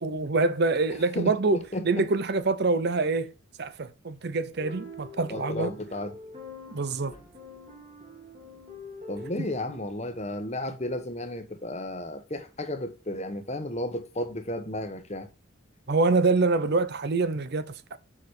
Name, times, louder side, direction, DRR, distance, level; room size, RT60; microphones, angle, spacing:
voice 1, 0.0-1.6 1.8-3.3 3.6-5.7 6.7-7.1 9.4-9.5 15.9-18.0, right 3 dB, 50° right, 0.6 m, -25 dB
voice 2, 1.1-2.1 5.3-6.2 7.1-7.2 9.1-15.3, left 1 dB, 30° left, 1.1 m, -33 dB
sound 1, 4.6-9.9, left 2 dB, 30° right, 2.4 m, -44 dB
7.1 x 6.2 x 4.8 m
head